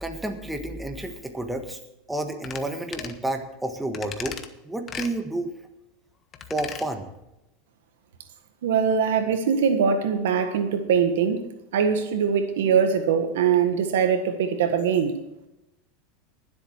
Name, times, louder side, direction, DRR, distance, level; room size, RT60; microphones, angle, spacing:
voice 1, 0.0-1.8 2.1-4.4 4.6-5.5 6.5-7.1, right 1 dB, 5° right, 5 dB, 1.6 m, -30 dB
sound 1, 2.4-2.6 2.9-3.2 3.9-4.5 4.9-5.1 6.3-6.9 7.2-7.3, left 7 dB, 30° left, 1.3 m, -36 dB
voice 2, 8.6-11.4 11.7-15.2, right 7 dB, 85° right, 8 dB, 1.6 m, -22 dB
20.5 x 8.1 x 4.6 m, 0.90 s
supercardioid pair, 125°, 0 cm